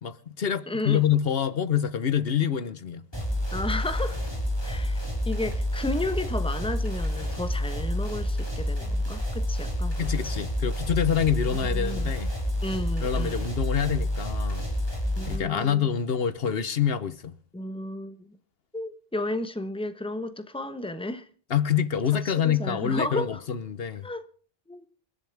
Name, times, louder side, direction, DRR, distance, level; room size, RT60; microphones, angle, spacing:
voice 1, 0.0-3.0 10.0-12.3 13.0-14.7 15.3-17.3 21.5-24.1, left 8 dB, 70° left, 1.1 m, -26 dB
voice 2, 0.7-1.0 3.5-4.2 4.6-10.3 11.7-12.1 12.6-13.5 15.2-15.9 17.5-18.3 18.7-21.3 22.2-23.4 24.0-24.3 24.7-24.9, left 1 dB, 5° left, 1.1 m, -33 dB
sound 1, 3.1-15.4, equal, 25° left, 5.1 m, -29 dB
28.0 x 11.5 x 3.4 m
omnidirectional pair, 1.0 m